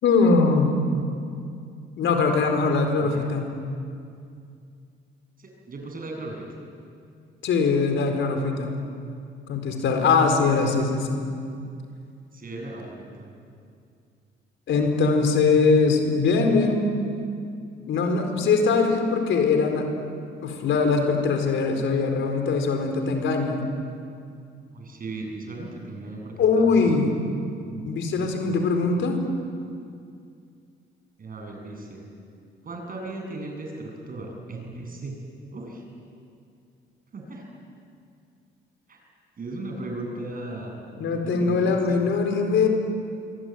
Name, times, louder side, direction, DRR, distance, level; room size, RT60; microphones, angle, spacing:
voice 1, 0.0-0.8 2.0-3.5 7.4-8.8 9.5-11.2 14.7-16.9 17.9-20.0 20.4-23.6 26.4-27.1 27.9-29.2 41.0-42.7, left 4 dB, 75° left, 4 dB, 4.5 m, -22 dB
voice 2, 3.0-3.3 5.4-6.4 12.3-12.9 13.2-13.3 24.7-26.9 27.6-28.5 31.2-32.1 32.6-35.1 35.5-35.8 37.1-37.4 38.9-39.0 39.4-42.1, right 2 dB, 45° right, 1 dB, 8.0 m, -37 dB
25.0 x 23.0 x 9.4 m, 2.4 s
cardioid pair, 90°, 20 cm